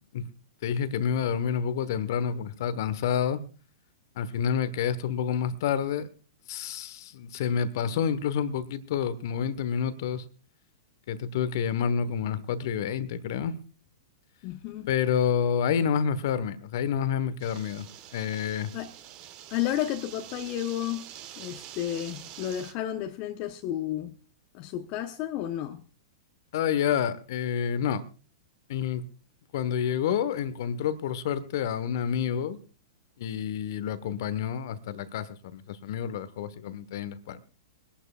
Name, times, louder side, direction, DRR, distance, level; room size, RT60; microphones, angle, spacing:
voice 1, 0.6-3.4 4.2-6.1 6.5-10.2 11.1-13.6 14.9-18.7 26.5-28.0 28.7-29.0 29.5-32.6 33.2-37.4, left 8 dB, 55° left, 1.2 m, -28 dB
voice 2, 14.4-14.9 18.5-18.9 19.5-21.1 21.4-24.2 24.5-25.8, left 12 dB, 40° left, 0.9 m, -32 dB
sound 1, 17.4-22.7, right 11 dB, 40° right, 1.3 m, -46 dB
24.0 x 11.5 x 2.4 m
figure-of-eight pair, 105°, 2 cm